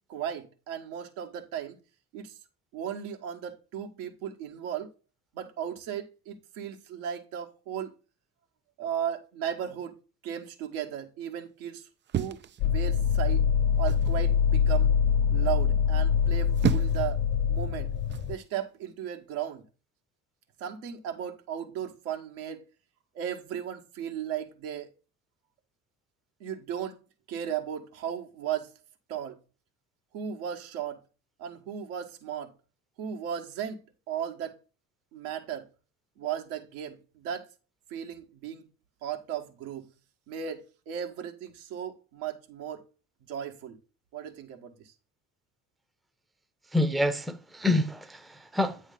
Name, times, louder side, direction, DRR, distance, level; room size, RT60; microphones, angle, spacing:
voice 1, 0.1-1.8 2.1-2.3 2.7-4.9 5.3-7.9 8.8-10.0 10.2-11.9 12.1-13.4 13.8-14.9 15.3-17.2 17.5-17.9 18.3-19.7 20.6-22.6 23.1-24.9 26.4-27.0 27.3-28.7 29.1-29.4 30.1-31.0 31.4-32.5 33.0-33.8 34.1-34.6 35.1-35.7 36.2-37.5 37.9-38.6 39.0-39.9 40.3-42.8 43.2-43.8 44.1-44.9, right 9 dB, 70° right, 1.3 m, -36 dB
sound 1, 12.1-13.2 13.9-14.3 16.2-17.1 18.1-18.4, right 9 dB, 25° right, 0.5 m, -32 dB
sound 2, 12.6-18.4, left 7 dB, 45° left, 0.4 m, -24 dB
voice 2, 46.7-48.8, left 1 dB, ahead, 0.8 m, -27 dB
8.9 x 3.2 x 5.3 m
figure-of-eight pair, 55°, 44 cm